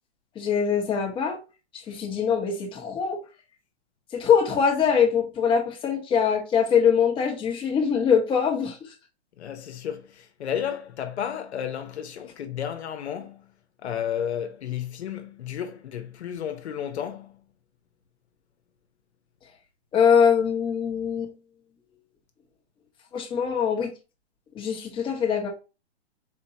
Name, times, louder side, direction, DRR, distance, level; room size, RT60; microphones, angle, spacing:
voice 1, 0.3-1.4 1.9-3.2 4.1-8.9 19.9-21.3 23.1-23.9 24.5-25.5, left 7 dB, 15° left, 1.1 m, -23 dB
voice 2, 9.4-13.5 13.8-17.4, left 9 dB, 75° left, 1.0 m, -32 dB
4.4 x 4.2 x 2.8 m
hypercardioid pair, 145°, 34 cm